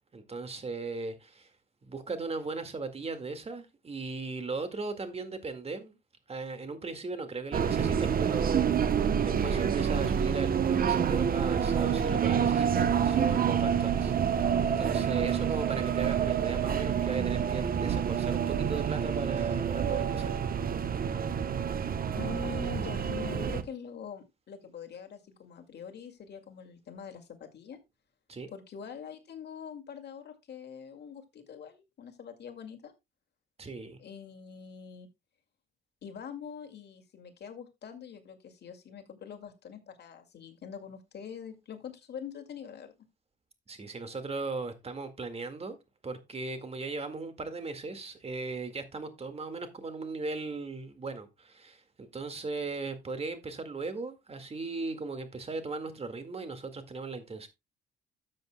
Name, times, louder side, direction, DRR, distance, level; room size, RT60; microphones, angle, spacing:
voice 1, 0.1-1.5 1.9-6.0 6.3-14.1 14.6-20.4 28.3-28.5 33.6-34.0 43.7-45.8 46.0-57.5, right 3 dB, 30° right, 1.9 m, -37 dB
sound 1, 7.5-23.6, right 8 dB, 45° right, 0.9 m, -28 dB
voice 2, 22.1-27.8 28.5-32.9 34.0-35.1 36.0-42.9, left 7 dB, 55° left, 2.2 m, -44 dB
13.0 x 7.6 x 2.2 m
cardioid pair, 90°, 20 cm